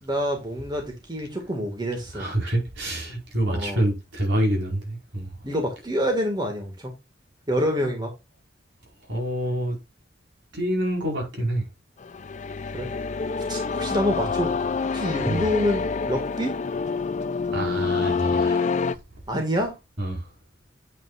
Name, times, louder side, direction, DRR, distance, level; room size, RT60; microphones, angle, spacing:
voice 1, 0.0-2.3 3.5-3.8 5.4-6.9 7.5-8.1 12.7-12.9 13.5-14.5 14.9-16.6 19.3-19.8, equal, 25° right, 2.0 m, -27 dB
voice 2, 2.1-5.3 9.1-9.8 10.5-11.6 15.2-15.4 17.5-18.7 20.0-20.3, right 1 dB, 70° right, 4.9 m, -27 dB
sound 1, 12.0-19.0, left 4 dB, 40° left, 0.5 m, -27 dB
9.0 x 8.2 x 2.5 m
head